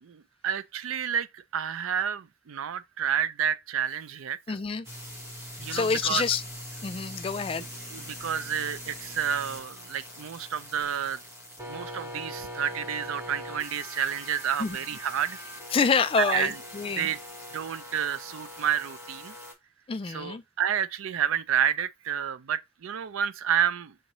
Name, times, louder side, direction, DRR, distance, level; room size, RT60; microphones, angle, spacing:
voice 1, 0.0-4.6 5.6-6.2 7.9-11.2 11.7-15.4 16.2-16.6 16.9-17.2 17.5-19.3 20.1-23.9, right 8 dB, 80° right, 0.4 m, -30 dB
voice 2, 4.5-4.9 5.7-6.4 6.8-7.7 14.6-14.8 15.7-17.1 19.9-20.4, left 5 dB, 25° left, 0.3 m, -27 dB
sound 1, 4.8-19.5, equal, 10° right, 1.1 m, -42 dB
6.3 x 2.7 x 3.0 m
head